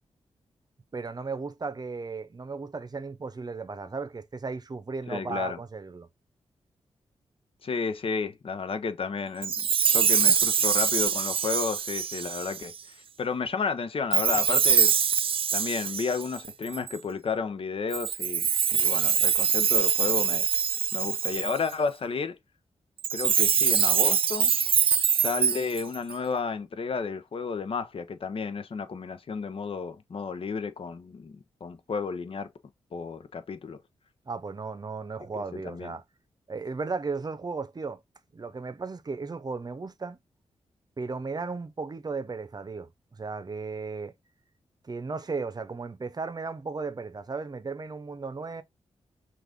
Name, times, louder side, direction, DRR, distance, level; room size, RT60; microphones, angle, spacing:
voice 1, 0.9-6.1 34.3-36.0 36.5-38.0 38.3-40.2 41.0-42.9 43.2-44.1 44.8-48.6, right 4 dB, 35° right, 0.7 m, -35 dB
voice 2, 5.1-5.6 7.6-12.7 13.2-14.9 15.5-20.5 20.9-22.4 23.1-24.5 25.2-32.5 32.9-33.8 35.3-36.0, left 5 dB, 55° left, 0.7 m, -32 dB
Chime, 9.4-12.8 14.1-17.0 17.9-21.7 23.0-26.1, right 7 dB, 55° right, 0.3 m, -24 dB
5.9 x 2.5 x 3.5 m
cardioid pair, 75°, 11 cm